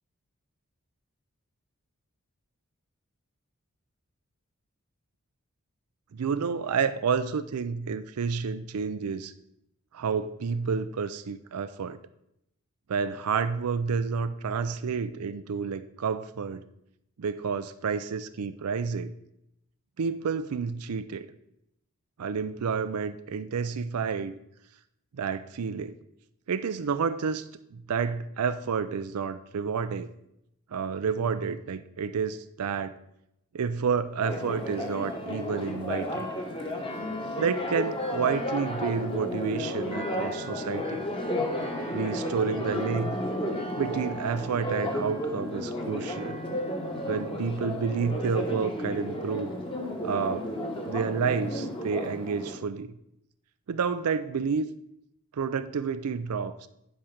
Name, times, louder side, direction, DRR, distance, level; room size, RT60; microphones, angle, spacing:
voice 1, 6.1-9.3 9.9-12.0 12.9-16.7 17.2-19.1 20.0-21.3 22.2-24.4 25.1-26.0 26.5-27.4 27.7-30.1 30.7-33.0 33.5-36.3 37.4-41.0 41.9-43.1 43.8-46.4 47.1-49.6 50.0-50.5 50.8-52.9 53.7-54.7 55.3-56.7, right 5 dB, 85° right, 11 dB, 0.5 m, -30 dB
Church bell, 34.2-52.6, left 1 dB, 25° left, 1.2 m, -33 dB
10.5 x 5.0 x 5.8 m, 0.80 s
head